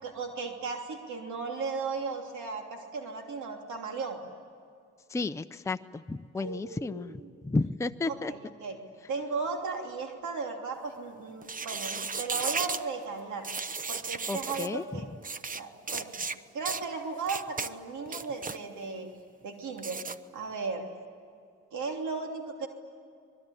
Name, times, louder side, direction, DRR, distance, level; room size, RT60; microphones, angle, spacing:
voice 1, 0.0-4.2 6.3-7.3 8.0-8.8 9.1-13.5 13.9-15.1 15.5-19.1 19.4-20.0 20.3-20.8 21.7-22.7, right 4 dB, 75° right, 3 dB, 3.1 m, -36 dB
voice 2, 5.1-5.8 6.1-7.1 7.4-8.3 14.3-14.8, left 3 dB, 10° left, 8 dB, 0.6 m, -32 dB
sound 1, 11.4-12.8 13.4-14.7 15.2-15.6 15.9-16.4 16.7-16.8 17.3-17.7 18.1-18.6 19.8-20.2, right 4 dB, 25° right, 0.9 m, -34 dB
25.0 x 21.5 x 9.9 m, 2.3 s
cardioid pair, 90°, 30 cm